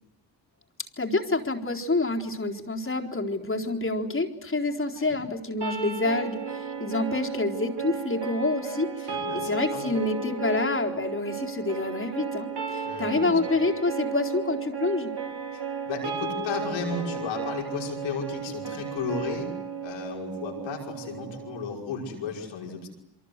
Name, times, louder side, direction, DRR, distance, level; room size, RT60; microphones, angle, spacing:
voice 1, 1.0-15.1, left 2 dB, 30° left, 1 dB, 4.0 m, -28 dB
sound 1, 5.6-21.6, right 6 dB, 60° right, 4.1 m, -34 dB
voice 2, 9.1-9.8 12.9-13.5 15.5-19.5 19.8-22.9, left 5 dB, 85° left, 0 dB, 5.7 m, -34 dB
29.0 x 23.5 x 8.2 m, 0.80 s
supercardioid pair, 50°, 45 cm